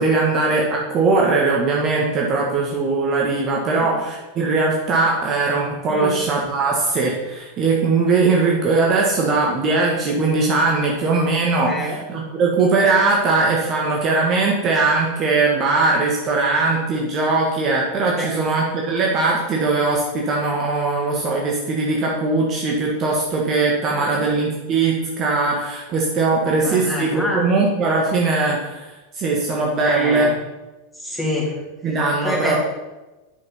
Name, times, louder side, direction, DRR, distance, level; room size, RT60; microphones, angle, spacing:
voice 1, 0.0-28.8 29.2-30.3 31.8-32.6, right 3 dB, 35° right, -2 dB, 1.7 m, -20 dB
voice 2, 11.7-12.0 18.1-18.3 23.9-24.2 26.4-27.4 29.8-30.3 30.9-31.6 32.2-32.6, left 1 dB, ahead, -4 dB, 3.3 m, -27 dB
8.9 x 6.3 x 5.7 m, 1.1 s
figure-of-eight pair, 90°, 0 cm